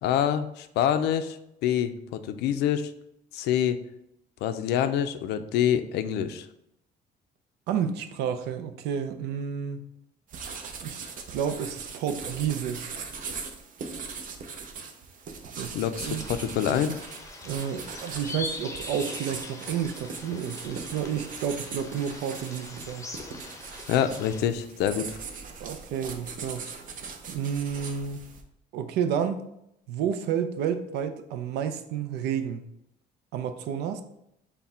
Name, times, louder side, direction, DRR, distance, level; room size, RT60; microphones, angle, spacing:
voice 1, 0.0-1.4 1.6-2.9 3.3-3.8 4.4-6.5 15.7-17.0 23.9-25.2, left 9 dB, 80° left, 10 dB, 0.4 m, -26 dB
voice 2, 7.7-9.8 10.8-11.0 11.3-13.0 15.6-16.2 17.4-23.1 25.6-26.7 27.3-28.2 28.7-29.4 29.9-32.6 33.3-34.0, right 8 dB, 85° right, 9 dB, 0.5 m, -30 dB
sound 1, 10.3-28.4, right 5 dB, 55° right, 0.7 m, -40 dB
sound 2, 16.0-24.4, left 3 dB, 20° left, 0.7 m, -42 dB
5.7 x 2.2 x 4.2 m, 0.80 s
cardioid pair, 110°, 17 cm